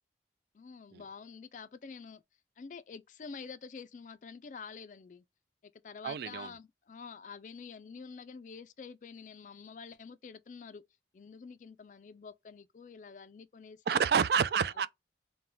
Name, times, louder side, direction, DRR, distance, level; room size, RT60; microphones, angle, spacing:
voice 1, 0.5-2.2 2.6-5.2 5.8-10.8 11.1-14.1, left 5 dB, 45° left, 0.3 m, -48 dB
voice 2, 6.0-6.5 13.9-14.9, right 7 dB, 65° right, 0.3 m, -28 dB
3.8 x 2.2 x 4.3 m
head